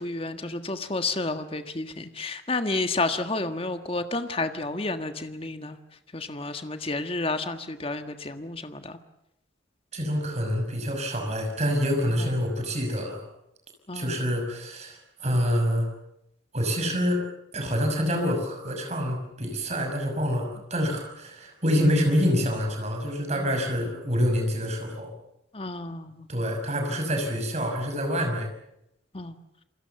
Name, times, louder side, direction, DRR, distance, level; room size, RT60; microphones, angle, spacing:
voice 1, 0.0-5.8 6.1-9.0 12.2-12.3 13.9-14.3 23.4-23.5 25.5-26.3 29.1-29.4, left 2 dB, 30° left, 8 dB, 1.5 m, -31 dB
voice 2, 9.9-13.2 13.9-15.9 16.5-17.2 17.5-25.1 26.3-28.5, equal, 35° right, 4 dB, 6.0 m, -26 dB
28.0 x 21.5 x 7.0 m, 0.82 s
head